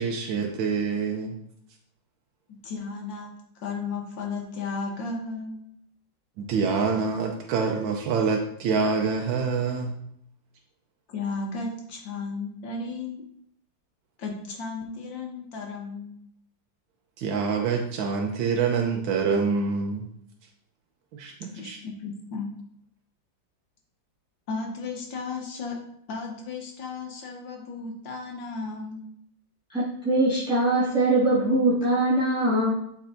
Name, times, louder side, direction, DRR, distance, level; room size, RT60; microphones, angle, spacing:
voice 1, 0.0-1.4 6.4-10.0 17.2-20.1 21.1-21.8, right 5 dB, 90° right, 1 dB, 1.5 m, -26 dB
voice 2, 2.6-5.6 11.1-13.2 14.2-16.2 21.5-22.5 24.5-25.8 26.1-29.0, left 4 dB, 80° left, 0 dB, 1.9 m, -34 dB
voice 3, 29.7-32.7, right 1 dB, 5° right, -10 dB, 2.0 m, -22 dB
12.0 x 4.6 x 2.6 m, 0.70 s
omnidirectional pair, 2.0 m